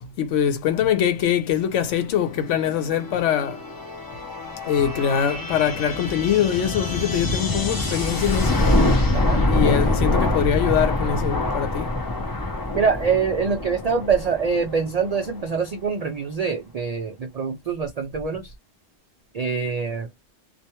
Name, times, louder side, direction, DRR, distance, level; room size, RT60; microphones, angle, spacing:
voice 1, 0.0-3.6 4.6-8.6 9.5-11.9, left 9 dB, 90° left, 1.0 m, -23 dB
sound 1, 2.2-15.7, left 2 dB, 30° left, 0.4 m, -25 dB
voice 2, 12.7-18.5 19.3-20.1, right 5 dB, 75° right, 0.3 m, -24 dB
2.3 x 2.2 x 2.8 m
omnidirectional pair, 1.2 m